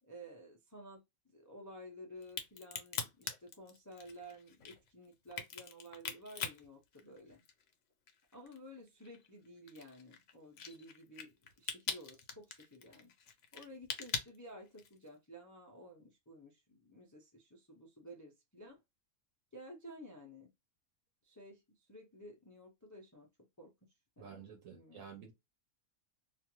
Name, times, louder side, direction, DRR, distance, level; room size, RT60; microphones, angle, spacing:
voice 1, 0.0-7.4 8.3-13.1 13.5-18.8 19.5-20.5 21.2-23.3 23.6-23.7 24.2-25.1, equal, 30° left, 0.3 m, -53 dB
Crack, 2.2-7.7 8.1-15.1, left 6 dB, 65° left, 0.9 m, -43 dB
voice 2, 24.2-25.3, right 7 dB, 70° right, 1.0 m, -51 dB
2.5 x 2.4 x 2.9 m
omnidirectional pair, 1.5 m